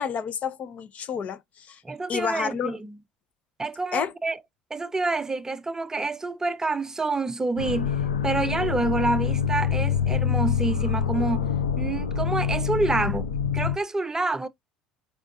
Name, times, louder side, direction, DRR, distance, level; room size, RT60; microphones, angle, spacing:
voice 1, 0.0-1.8 2.1-2.8 3.9-4.1, left 7 dB, 45° left, 0.7 m, -30 dB
voice 2, 1.8-3.0 3.6-4.4 4.7-8.0 8.2-11.5 11.8-14.5, right 3 dB, 15° right, 0.5 m, -28 dB
sound 1, 7.6-13.8, left 7 dB, 80° left, 0.7 m, -26 dB
4.5 x 3.4 x 2.6 m
hypercardioid pair, 65°, 3 cm